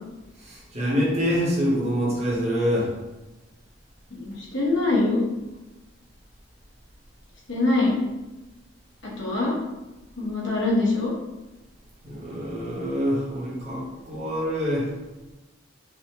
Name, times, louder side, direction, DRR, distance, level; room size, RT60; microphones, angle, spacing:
voice 1, 0.4-2.9 12.0-14.9, equal, 30° right, -6 dB, 1.1 m, -26 dB
voice 2, 4.1-5.3 7.5-8.0 9.2-9.6 10.2-11.1, left 2 dB, 60° left, -4 dB, 1.1 m, -23 dB
4.8 x 2.7 x 2.9 m, 1.1 s
head